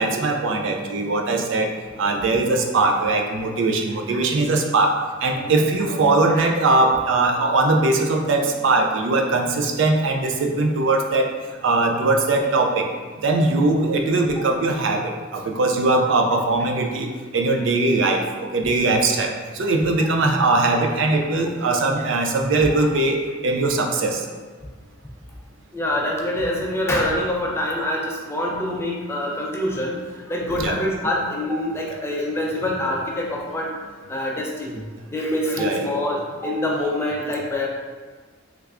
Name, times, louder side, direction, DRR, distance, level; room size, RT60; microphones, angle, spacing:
voice 1, 0.0-1.7 2.0-4.9 5.2-11.3 11.6-12.9 13.2-17.1 17.3-23.2 23.4-24.2 30.6-30.8 35.6-35.8, right 2 dB, 65° right, 2 dB, 0.4 m, -20 dB
voice 2, 25.7-33.8 34.1-37.7, left 1 dB, 10° left, -2 dB, 0.4 m, -25 dB
3.4 x 3.2 x 2.4 m, 1.5 s
head